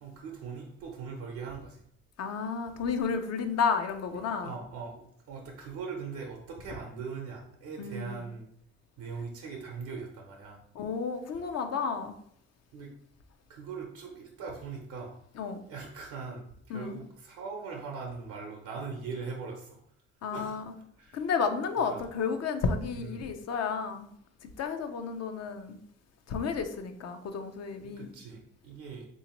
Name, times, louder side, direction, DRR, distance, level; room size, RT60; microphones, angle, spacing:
voice 1, 0.0-1.8 4.4-8.5 9.0-10.6 11.3-11.4 12.7-12.9 13.5-15.2 15.6-19.8 20.3-20.6 21.0-21.3 21.9-22.0 22.9-23.3 27.8-29.1, right 5 dB, 85° right, 0.7 m, -41 dB
voice 2, 2.2-4.5 7.8-8.2 10.7-12.1 15.4-15.6 16.7-17.0 20.2-20.6 21.1-24.1 24.6-25.8 26.3-28.1, left 5 dB, 60° left, 0.5 m, -32 dB
3.5 x 2.7 x 2.9 m
cardioid pair, 90°, 30 cm